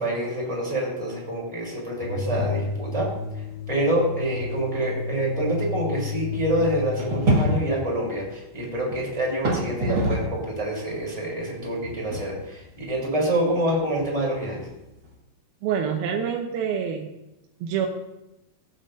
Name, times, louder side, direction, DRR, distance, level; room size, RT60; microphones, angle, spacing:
voice 1, 0.0-3.1 3.7-14.6, right 1 dB, 10° right, -4 dB, 3.4 m, -27 dB
sound 1, 2.0-7.6, left 4 dB, 90° left, 3.0 m, -31 dB
sound 2, 2.3-2.7 3.0-3.1 3.8-3.9 4.4-10.5 10.8-15.1, right 1 dB, 45° right, 1.4 m, -29 dB
voice 2, 15.6-17.1 17.6-17.9, right 8 dB, 75° right, 1 dB, 2.5 m, -26 dB
17.0 x 8.6 x 2.6 m, 0.91 s
omnidirectional pair, 4.6 m